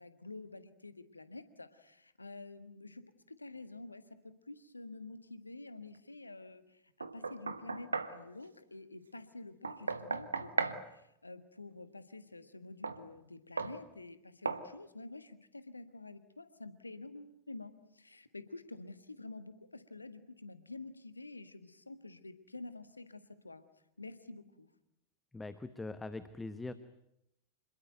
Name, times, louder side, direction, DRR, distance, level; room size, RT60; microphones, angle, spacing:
voice 1, 0.0-23.6 24.0-24.7, left 2 dB, 80° left, 12 dB, 1.6 m, -49 dB
Knock, 7.0-8.2 9.6-10.8 12.8-13.0 13.6-13.8 14.5-14.7, right 4 dB, 75° right, 1.4 m, -36 dB
voice 2, 25.3-26.7, left 2 dB, 10° left, 12 dB, 1.1 m, -42 dB
27.0 x 21.0 x 9.2 m, 0.81 s
figure-of-eight pair, 90°, 0 cm